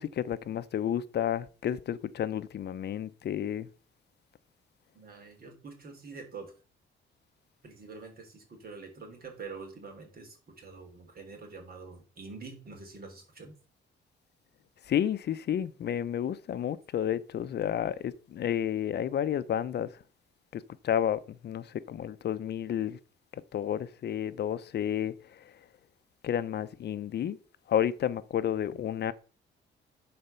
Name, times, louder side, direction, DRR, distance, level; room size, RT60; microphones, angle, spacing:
voice 1, 0.0-3.7 14.9-19.9 20.5-23.0 23.5-25.1 26.2-27.4 27.7-29.1, left 10 dB, 55° left, 0.7 m, -31 dB
voice 2, 4.9-6.5 7.6-13.5, right 4 dB, 50° right, 3.3 m, -46 dB
10.5 x 4.3 x 5.6 m
cardioid pair, 90°, 20 cm